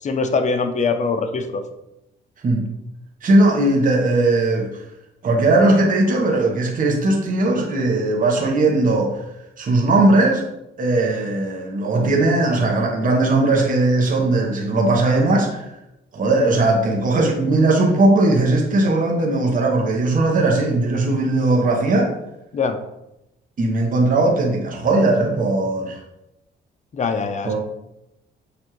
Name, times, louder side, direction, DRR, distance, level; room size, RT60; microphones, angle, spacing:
voice 1, 0.0-1.6 22.5-22.8 26.9-27.6, left 4 dB, 35° left, 7 dB, 0.6 m, -22 dB
voice 2, 3.2-4.8 5.2-9.2 9.6-10.4 10.8-15.6 16.1-22.1 23.6-26.0 27.4-27.6, right 2 dB, 45° right, -1 dB, 0.9 m, -18 dB
6.6 x 2.6 x 3.0 m, 0.89 s
cardioid pair, 90°, 20 cm